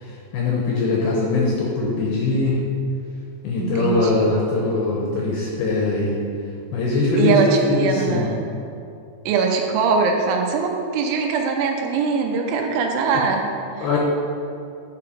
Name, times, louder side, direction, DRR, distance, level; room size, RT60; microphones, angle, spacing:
voice 1, 0.0-2.6 3.4-6.2 6.7-8.3 13.8-14.0, left 3 dB, 75° left, -3 dB, 2.4 m, -21 dB
voice 2, 3.6-4.3 7.2-8.4 9.3-13.5 13.8-14.0, right 5 dB, 85° right, 2 dB, 3.0 m, -22 dB
11.5 x 4.8 x 5.0 m, 2.5 s
omnidirectional pair, 5.4 m